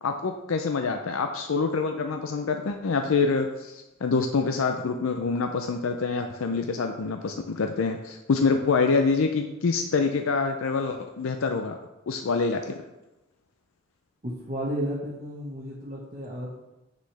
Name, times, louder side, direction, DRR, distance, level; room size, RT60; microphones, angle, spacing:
voice 1, 0.0-11.8 12.1-12.8, left 4 dB, 90° left, 6 dB, 0.5 m, -26 dB
voice 2, 14.2-16.6, equal, 35° right, -7 dB, 1.3 m, -33 dB
7.5 x 6.3 x 3.3 m, 0.97 s
head